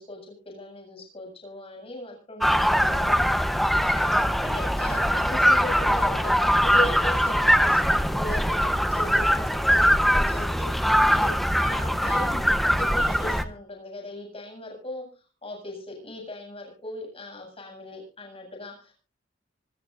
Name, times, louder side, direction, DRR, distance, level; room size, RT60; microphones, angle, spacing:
voice 1, 0.0-15.1 15.4-18.9, left 1 dB, 30° left, 1 dB, 7.7 m, -38 dB
sound 1, 2.4-13.4, equal, ahead, 0.9 m, -22 dB
26.0 x 14.0 x 2.6 m, 0.36 s
head